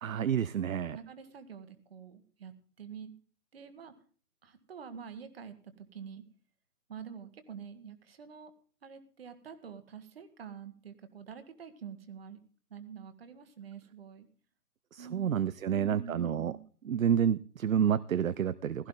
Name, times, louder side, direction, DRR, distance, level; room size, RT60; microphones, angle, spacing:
voice 1, 0.0-1.0 14.9-16.5 16.9-18.9, right 8 dB, 60° right, 17 dB, 0.6 m, -29 dB
voice 2, 0.7-3.1 3.5-3.9 4.4-6.2 6.9-8.5 8.8-12.4 12.7-14.3 15.0-15.4 15.7-16.6, right 7 dB, 40° right, 11 dB, 1.6 m, -47 dB
16.0 x 14.0 x 3.8 m, 0.41 s
figure-of-eight pair, 150°, 46 cm